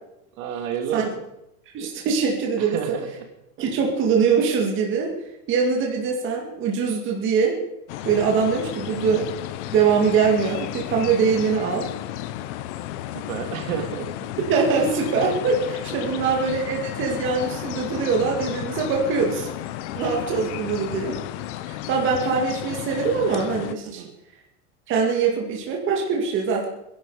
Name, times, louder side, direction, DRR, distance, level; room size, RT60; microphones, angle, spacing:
voice 1, 0.4-1.1 2.6-3.1 13.1-14.3 15.9-16.0 21.0-21.1 23.8-24.1, right 8 dB, 60° right, 5 dB, 2.5 m, -30 dB
voice 2, 1.7-2.8 3.6-5.2 5.5-7.6 8.0-9.3 9.7-11.9 14.5-19.5 19.9-21.2 21.7-24.0 24.9-26.7, right 5 dB, 25° right, 0 dB, 2.2 m, -23 dB
sound 1, 7.9-23.7, left 13 dB, 50° left, 0.8 m, -33 dB
22.5 x 11.5 x 4.9 m, 0.87 s
supercardioid pair, 165°, 45 cm